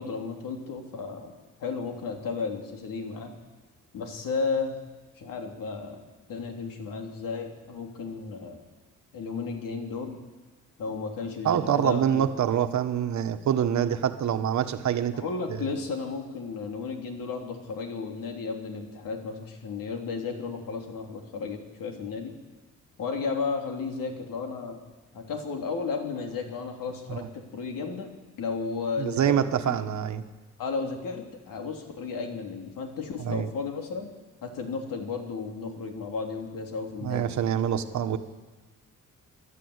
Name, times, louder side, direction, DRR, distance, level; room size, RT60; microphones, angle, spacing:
voice 1, 0.0-1.3 1.6-3.3 3.9-4.8 5.2-6.0 6.3-8.6 9.1-10.2 10.8-12.3 15.1-22.3 23.0-24.8 25.1-28.1 28.4-29.3 29.6-29.8 30.6-34.1 34.4-37.3, left 4 dB, 85° left, 2 dB, 3.4 m, -33 dB
voice 2, 11.4-15.2 27.1-27.2 29.0-30.2 33.2-33.5 37.0-38.2, right 9 dB, 60° right, 8 dB, 1.3 m, -25 dB
28.5 x 12.0 x 8.2 m, 1.2 s
wide cardioid pair, 165°, 32 cm